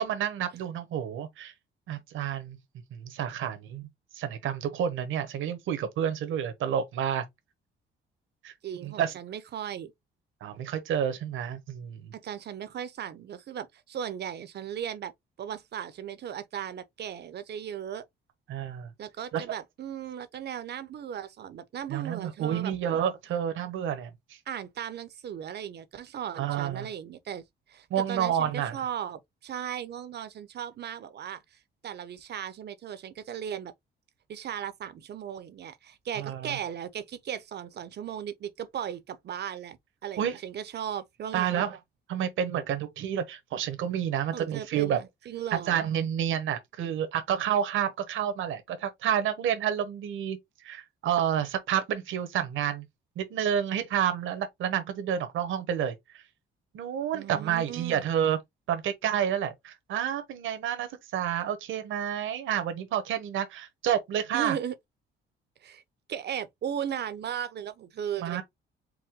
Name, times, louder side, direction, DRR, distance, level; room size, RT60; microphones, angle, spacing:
voice 1, 0.0-1.5 1.9-2.6 2.9-3.9 4.1-7.2 8.4-8.5 8.8-9.1 10.4-12.1 18.5-18.9 19.3-19.6 21.9-24.4 26.4-26.9 27.9-28.8 36.2-36.6 40.2-40.4 41.3-41.8 42.1-45.0 45.5-50.4 50.6-52.9 53.2-56.0 56.7-58.4 58.7-64.6 68.2-68.4, right 9 dB, 80° right, 1.1 m, -29 dB
voice 2, 8.6-9.9 12.1-15.1 15.4-18.0 19.0-22.7 24.5-27.4 27.7-33.7 34.3-41.6 44.3-45.8 57.1-58.0 64.3-64.8 65.6-65.8 66.1-68.4, right 9 dB, 60° right, 0.8 m, -37 dB
4.8 x 2.2 x 3.6 m
cardioid pair, 90°, 20 cm